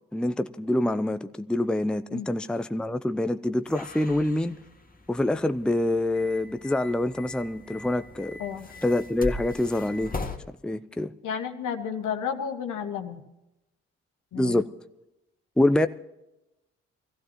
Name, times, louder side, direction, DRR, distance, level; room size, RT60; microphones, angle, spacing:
voice 1, 0.1-4.6 5.1-8.4 8.8-10.1 10.6-11.1 14.3-14.7 15.6-15.9, left 1 dB, 5° left, 0.6 m, -26 dB
sound 1, 3.6-10.4, left 2 dB, 25° left, 1.9 m, -40 dB
voice 2, 11.2-13.2 14.3-14.6, left 7 dB, 70° left, 1.6 m, -32 dB
21.5 x 15.5 x 2.9 m
hypercardioid pair, 45°, 32 cm